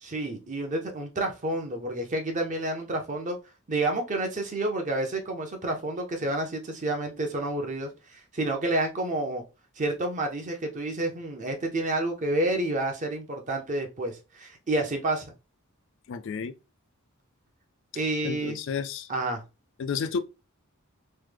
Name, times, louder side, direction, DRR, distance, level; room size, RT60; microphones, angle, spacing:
voice 1, 0.0-3.4 3.7-9.4 9.8-15.2 17.9-18.6 19.1-19.4, right 2 dB, 35° right, 0.7 m, -29 dB
voice 2, 16.1-16.5 18.2-19.1 19.8-20.2, left 6 dB, 60° left, 0.3 m, -31 dB
3.1 x 2.1 x 3.3 m
head